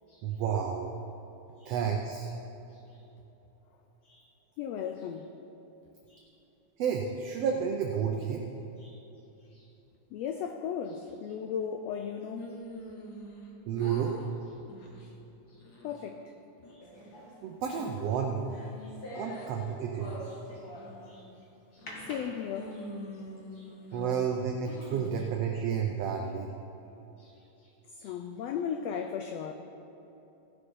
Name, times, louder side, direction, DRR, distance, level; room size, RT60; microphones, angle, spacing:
voice 1, 0.2-0.9 1.6-2.3 6.8-8.5 13.7-14.2 17.4-18.5 19.1-20.2 23.9-26.5, right 7 dB, 75° right, 1.5 m, -31 dB
voice 2, 2.7-3.0 4.0-4.3 4.6-5.3 6.1-6.3 8.8-9.1 9.5-9.7 10.1-12.6 15.0-15.1 15.5-16.3 16.7-16.9 18.8-19.2 20.2-20.6 21.1-21.3 21.7-22.9 23.5-24.0 27.2-29.5, left 7 dB, 85° left, 1.4 m, -38 dB
sound 1, 12.4-13.5 13.8-14.3 14.7-15.0 15.5-16.1 16.6-17.4 17.8-19.5 20.0-20.2 20.7-21.2 21.8-22.2 22.5-24.1 24.6-25.2, equal, 60° left, 1.0 m, -46 dB
sound 2, 16.8-21.2 21.9-23.0 23.5-23.6 23.9-24.4, equal, 35° left, 1.8 m, -45 dB
16.0 x 6.8 x 5.5 m
omnidirectional pair, 3.5 m